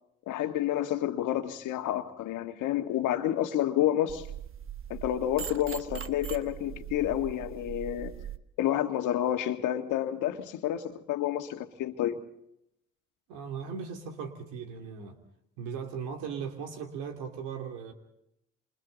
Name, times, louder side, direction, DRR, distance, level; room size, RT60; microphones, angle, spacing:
voice 1, 0.3-4.3 4.9-8.1 8.6-12.2, left 12 dB, 80° left, 1.7 m, -29 dB
sound 1, 4.1-8.4, right 9 dB, 45° right, 1.1 m, -41 dB
voice 2, 13.3-15.2 15.6-17.9, right 6 dB, 90° right, 2.8 m, -38 dB
28.5 x 27.5 x 4.0 m
supercardioid pair, 55°, 30 cm